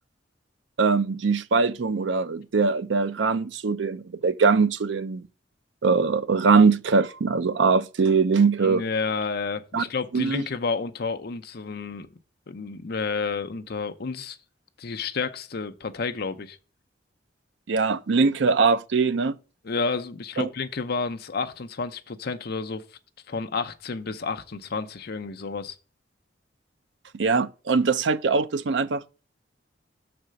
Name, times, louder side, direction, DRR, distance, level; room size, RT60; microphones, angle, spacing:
voice 1, 0.8-5.2 5.8-8.8 9.7-9.8 10.1-10.4 17.7-19.4 20.4-20.5 27.1-29.0, right 4 dB, 70° right, 0.5 m, -22 dB
voice 2, 8.6-12.1 12.5-14.4 14.8-16.6 19.6-22.8 23.3-25.8, left 4 dB, 55° left, 0.7 m, -30 dB
6.6 x 4.3 x 6.2 m
head